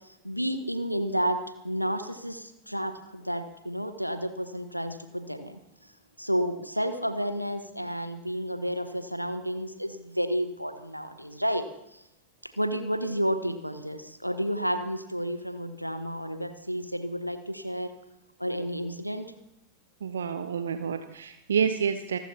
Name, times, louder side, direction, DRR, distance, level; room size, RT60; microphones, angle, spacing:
voice 1, 0.2-1.4 1.6-5.6 6.2-11.6 11.9-12.0 12.4-17.9 18.4-19.3, equal, 90° right, 8 dB, 1.3 m, -31 dB
voice 2, 20.0-22.2, right 7 dB, 65° right, 9 dB, 0.8 m, -28 dB
27.0 x 14.0 x 2.9 m, 0.84 s
figure-of-eight pair, 90°, 0 cm